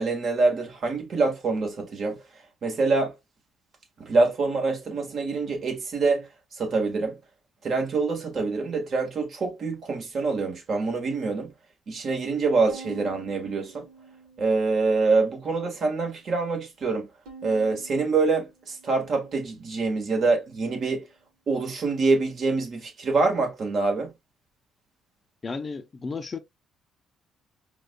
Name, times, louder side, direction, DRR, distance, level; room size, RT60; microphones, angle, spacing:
voice 1, 0.0-2.2 2.6-3.1 4.0-7.2 7.6-11.5 11.9-13.9 14.4-17.1 17.4-21.0 21.5-24.1, right 3 dB, 55° right, 1.5 m, -25 dB
Bowed string instrument, 12.7-15.0 15.5-16.3 17.3-19.8, right 4 dB, 85° right, 1.1 m, -48 dB
voice 2, 25.4-26.4, left 4 dB, 35° left, 0.5 m, -33 dB
4.6 x 2.3 x 2.2 m
cardioid pair, 85°, 0 cm